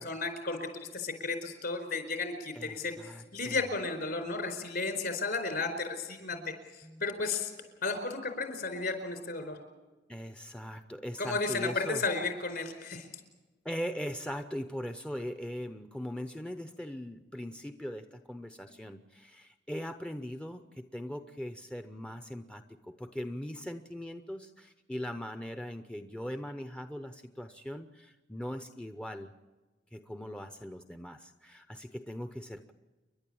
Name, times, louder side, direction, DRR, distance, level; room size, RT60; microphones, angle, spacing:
voice 1, 0.0-2.9 3.3-6.5 7.0-7.5 7.8-9.6 11.2-13.1, left 3 dB, 60° left, 6 dB, 4.6 m, -33 dB
voice 2, 2.5-3.7 6.3-6.6 6.8-7.1 10.1-12.0 13.6-29.3 29.9-32.7, equal, 5° left, 8 dB, 0.7 m, -40 dB
30.0 x 11.5 x 8.6 m, 1.2 s
head